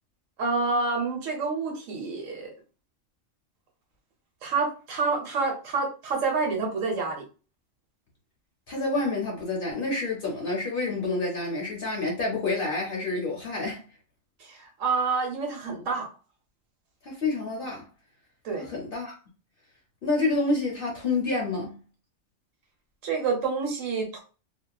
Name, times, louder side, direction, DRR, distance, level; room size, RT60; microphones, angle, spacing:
voice 1, 0.4-2.5 4.4-7.2 14.4-16.1 18.4-18.7 23.0-24.2, right 4 dB, 70° right, 1.1 m, -28 dB
voice 2, 8.7-13.8 17.0-17.9 18.6-19.1 20.0-21.7, left 3 dB, 50° left, 0.7 m, -28 dB
2.7 x 2.3 x 2.2 m
omnidirectional pair, 1.4 m